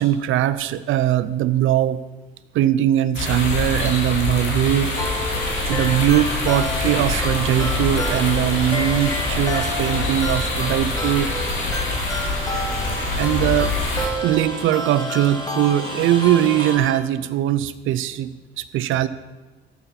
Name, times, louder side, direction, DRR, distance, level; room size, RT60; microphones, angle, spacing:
voice 1, 0.0-2.0 2.5-5.0 5.7-11.3 13.2-13.7 14.2-19.1, right 12 dB, 80° right, 14 dB, 0.5 m, -21 dB
sound 1, 3.1-14.1, left 3 dB, 85° left, 2.1 m, -25 dB
Rain, 4.6-16.8, right 2 dB, 25° right, 1.6 m, -37 dB
sound 2, 5.0-17.0, equal, 20° left, 1.3 m, -30 dB
7.0 x 6.7 x 5.7 m, 1.2 s
cardioid pair, 90°, 20 cm